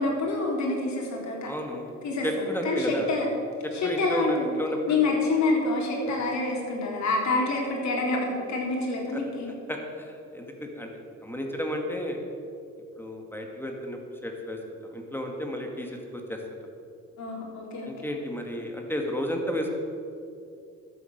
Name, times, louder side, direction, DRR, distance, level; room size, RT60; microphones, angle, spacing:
voice 1, 0.0-1.5 2.0-2.3 2.6-3.3 3.7-4.5 4.9-9.5 17.2-17.9, left 3 dB, 65° left, -1 dB, 3.7 m, -27 dB
voice 2, 1.4-1.9 2.2-3.1 3.8-5.0 6.1-6.2 9.1-9.2 9.7-10.9 11.2-12.2 13.0-16.4 17.9-19.7, equal, 5° left, 2 dB, 2.2 m, -32 dB
12.5 x 8.0 x 8.1 m, 2.5 s
cardioid pair, 90°, 30 cm